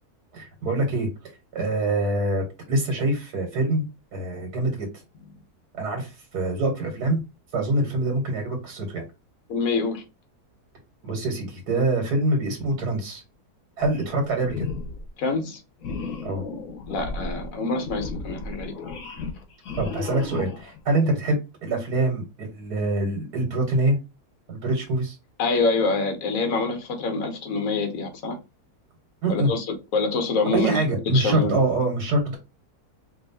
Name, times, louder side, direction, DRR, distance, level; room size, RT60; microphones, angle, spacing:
voice 1, 0.3-1.1 1.5-4.9 5.8-7.2 7.5-9.0 11.0-13.2 13.8-14.7 16.2-16.4 19.8-24.0 24.5-25.2 29.2-29.5 30.5-32.4, right 2 dB, 85° right, 1.8 m, -25 dB
voice 2, 9.5-10.0 15.2-15.6 16.9-18.7 25.4-28.4 29.3-31.6, left 3 dB, 60° left, 1.4 m, -26 dB
sound 1, 13.8-14.2 14.4-15.1 15.8-20.8, left 4 dB, 80° left, 1.6 m, -34 dB
4.4 x 3.0 x 2.7 m
omnidirectional pair, 1.7 m